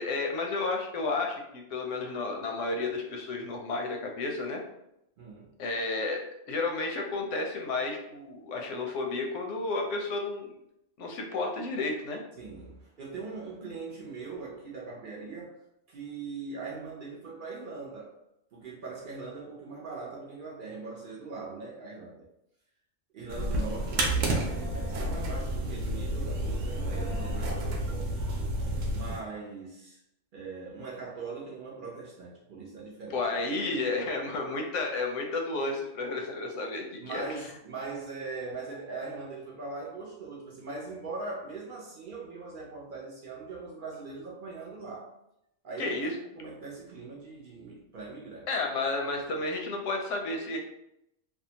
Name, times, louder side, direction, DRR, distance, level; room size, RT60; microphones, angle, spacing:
voice 1, 0.0-4.6 5.6-6.2 6.5-10.6 11.0-12.2 33.1-37.2 45.8-46.1 48.5-50.6, left 3 dB, 85° left, 2 dB, 0.9 m, -32 dB
voice 2, 5.2-5.6 12.3-18.1 18.5-22.3 23.1-28.1 28.9-30.0 30.3-33.2 37.0-45.1 45.6-48.9, right 4 dB, 55° right, -3 dB, 0.6 m, -41 dB
sound 1, 23.3-29.2, right 1 dB, 85° right, 1.0 m, -30 dB
2.7 x 2.1 x 2.7 m, 0.82 s
omnidirectional pair, 1.2 m